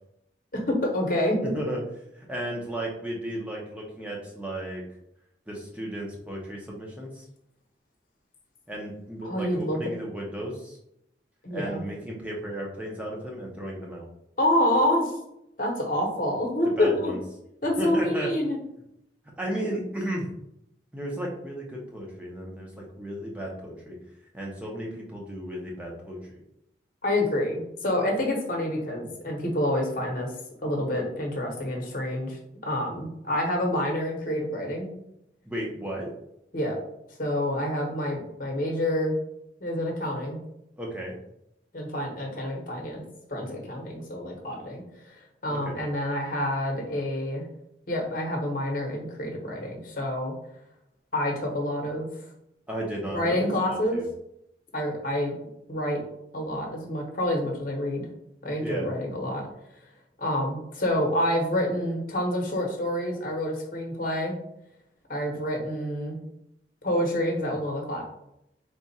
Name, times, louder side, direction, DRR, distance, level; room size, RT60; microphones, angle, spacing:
voice 1, 0.5-1.5 9.2-9.8 11.4-11.8 14.4-15.1 15.6-17.1 17.6-18.6 27.0-30.3 30.6-34.9 36.5-36.8 37.2-39.2 39.6-40.4 41.7-43.0 43.3-47.5 47.9-50.3 51.1-52.1 53.1-54.0 54.7-55.4 55.7-56.0 56.3-58.1 58.4-59.4 60.2-64.4 65.1-66.2 66.8-68.0, left 1 dB, 50° left, 0 dB, 1.0 m, -27 dB
voice 2, 1.4-1.8 2.1-4.8 5.5-7.2 8.7-10.8 11.5-14.1 16.6-17.2 17.8-18.3 19.4-20.3 20.9-24.0 24.3-26.4 35.5-36.1 40.8-41.2 45.5-45.8 52.7-54.0 58.6-58.9, right 1 dB, 5° right, -2 dB, 0.8 m, -34 dB
3.6 x 2.4 x 4.1 m, 0.80 s
head